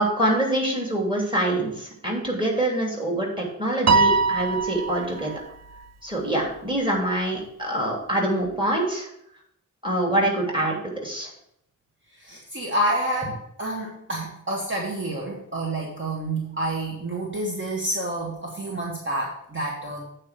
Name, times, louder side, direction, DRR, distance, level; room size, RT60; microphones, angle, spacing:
voice 1, 0.0-5.3 6.0-9.1 9.8-11.3, right 1 dB, 15° right, -2 dB, 2.9 m, -25 dB
Piano, 3.9-5.4, right 4 dB, 55° right, 0.5 m, -21 dB
voice 2, 12.2-20.1, right 1 dB, 40° right, -3 dB, 1.5 m, -29 dB
8.5 x 4.5 x 6.4 m, 0.74 s
wide cardioid pair, 80°, 31 cm